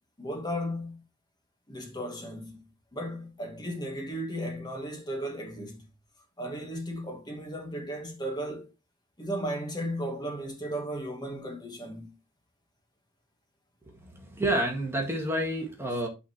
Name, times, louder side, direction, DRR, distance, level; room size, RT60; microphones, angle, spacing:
voice 1, 0.2-1.0 1.7-2.6 2.9-5.8 6.4-8.7 9.2-12.1, equal, 20° left, 2.1 m, -35 dB
voice 2, 14.0-16.1, right 1 dB, 10° right, 1.8 m, -29 dB
9.8 x 4.3 x 4.5 m
head